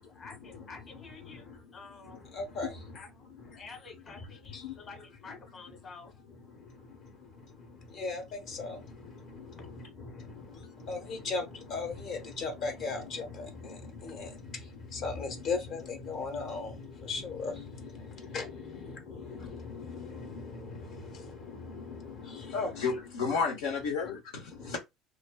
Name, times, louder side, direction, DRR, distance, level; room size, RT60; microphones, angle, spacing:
voice 1, 0.0-2.2 2.9-6.3 9.6-9.7 18.7-18.8 19.1-19.2, left 4 dB, 40° left, 1.3 m, -50 dB
voice 2, 1.3-1.6 2.1-3.0 3.4-3.6 4.5-4.8 6.5-22.9 24.5-24.7, left 4 dB, 60° left, 1.0 m, -39 dB
voice 3, 22.8-24.8, left 5 dB, 85° left, 0.7 m, -32 dB
2.5 x 2.3 x 2.2 m
supercardioid pair, 85°, 0 cm